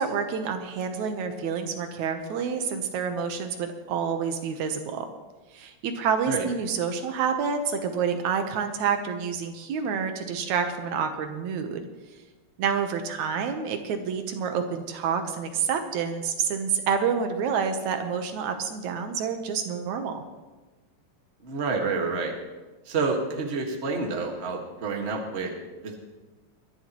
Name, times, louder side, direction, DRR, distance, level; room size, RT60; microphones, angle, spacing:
voice 1, 0.0-5.1 5.5-11.9 12.6-20.2, right 6 dB, 80° right, 6 dB, 2.4 m, -28 dB
voice 2, 21.4-22.3 22.8-25.5 25.8-26.0, right 4 dB, 30° right, 1 dB, 1.5 m, -28 dB
22.5 x 11.0 x 3.0 m, 1.2 s
omnidirectional pair, 3.3 m